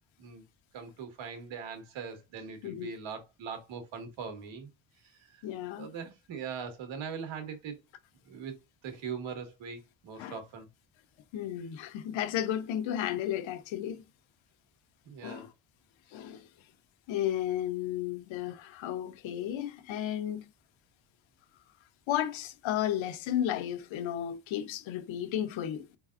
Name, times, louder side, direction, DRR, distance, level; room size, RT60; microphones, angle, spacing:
voice 1, 0.7-4.7 5.0-5.4 5.8-7.8 8.2-8.5 8.8-10.7 15.1-15.5, right 6 dB, 75° right, 1.8 m, -41 dB
voice 2, 2.6-2.9 5.4-5.9 10.2-10.4 11.3-14.0 15.2-15.5 16.1-16.5 17.1-20.5 22.1-25.8, left 11 dB, 85° left, 0.9 m, -33 dB
4.9 x 3.9 x 2.4 m
cardioid pair, 135°, 45 cm